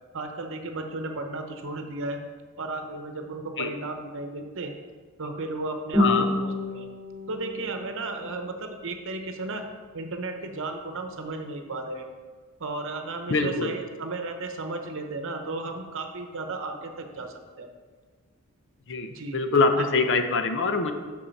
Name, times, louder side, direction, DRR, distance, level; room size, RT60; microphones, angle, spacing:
voice 1, 0.1-2.2 2.6-4.7 5.2-6.9 7.3-9.7 9.9-12.0 12.6-17.7 19.1-19.4 19.8-20.2, right 2 dB, 60° right, 5 dB, 0.9 m, -34 dB
Guitar, 5.9-8.9, left 2 dB, 5° left, 2.7 m, -29 dB
voice 2, 13.3-13.7 18.9-20.9, left 3 dB, 55° left, 7 dB, 0.7 m, -24 dB
9.0 x 6.3 x 4.1 m, 1.5 s
head